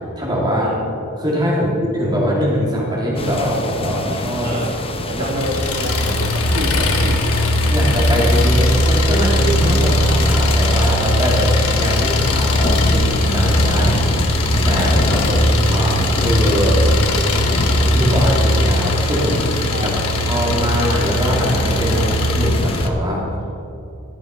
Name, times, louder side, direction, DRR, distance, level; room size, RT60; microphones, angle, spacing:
voice 1, 0.2-0.7 1.2-4.6 5.0-5.3 7.7-13.9 14.6-16.8 17.9-19.4 19.8-19.9 20.3-23.3, equal, 20° right, -5 dB, 2.9 m, -22 dB
sound 1, 3.2-22.9, left 2 dB, 25° left, 0.8 m, -26 dB
voice 2, 4.4-4.8 5.1-7.2 13.7-13.9 14.6-14.8 19.7-19.9, right 1 dB, 40° right, 1 dB, 1.9 m, -29 dB
Engine, 5.4-22.9, left 1 dB, 65° left, 1.3 m, -18 dB
13.5 x 11.0 x 5.6 m, 2.7 s
head